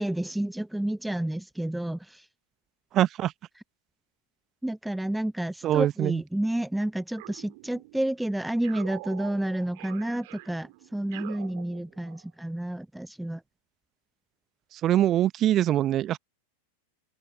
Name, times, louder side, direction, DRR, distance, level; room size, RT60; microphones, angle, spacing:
voice 1, 0.0-2.2 4.6-13.4, right 1 dB, 5° right, 0.9 m, -30 dB
voice 2, 2.9-3.3 5.6-6.2 14.8-16.2, right 12 dB, 30° right, 1.2 m, -23 dB
sound 1, 7.2-8.1 8.6-12.3, right 24 dB, 50° right, 2.7 m, -45 dB
figure-of-eight pair, 90°, 0 cm